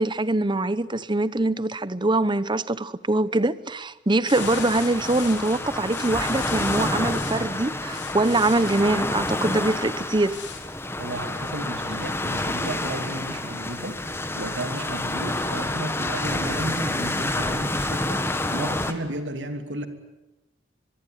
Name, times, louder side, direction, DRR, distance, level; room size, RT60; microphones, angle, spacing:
voice 1, 0.0-10.4, right 2 dB, 25° right, 0.9 m, -23 dB
sound 1, 4.3-7.4 7.9-8.9 10.3-10.7, left 8 dB, 75° left, 3.6 m, -39 dB
sound 2, 4.3-18.9, left 2 dB, 15° left, 1.7 m, -28 dB
voice 2, 11.0-18.2 18.5-19.9, right 1 dB, 80° right, 3.1 m, -33 dB
24.0 x 22.5 x 9.7 m
head